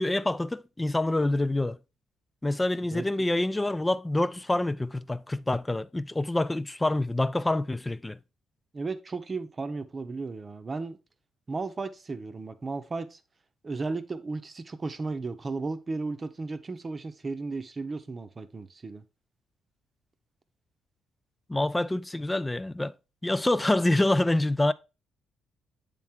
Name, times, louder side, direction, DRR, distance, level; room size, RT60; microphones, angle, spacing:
voice 1, 0.0-1.8 2.4-8.2 21.5-22.9 23.2-24.7, left 1 dB, 15° left, 0.4 m, -26 dB
voice 2, 2.9-3.3 8.7-11.0 11.5-13.2 13.6-19.0, right 3 dB, 30° right, 0.8 m, -35 dB
8.4 x 3.6 x 4.4 m
cardioid pair, 90°, 0 cm